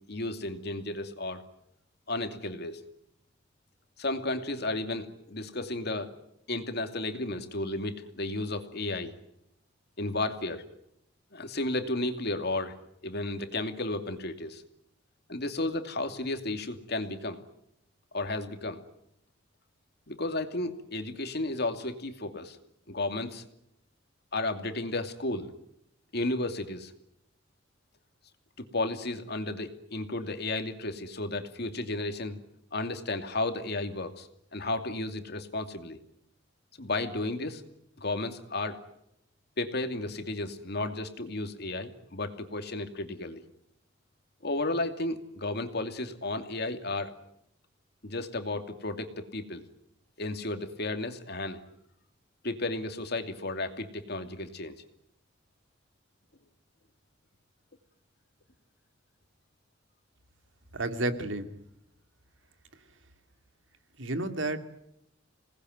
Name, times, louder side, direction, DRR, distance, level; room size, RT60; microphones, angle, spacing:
voice 1, 0.1-1.4 2.1-2.8 4.0-6.1 6.5-9.1 10.0-10.6 11.3-12.8 13.0-14.6 15.3-17.4 18.1-18.8 20.1-22.6 22.9-23.4 24.3-25.5 26.1-26.9 28.6-32.4 32.7-36.0 36.8-37.6 38.0-38.8 39.6-43.4 44.4-47.1 48.0-49.6 50.2-51.6 52.4-54.8, left 2 dB, 60° left, 7 dB, 2.6 m, -33 dB
voice 2, 60.7-61.5 64.0-64.7, right 2 dB, 80° right, 8 dB, 2.7 m, -31 dB
27.5 x 19.5 x 9.4 m, 0.78 s
head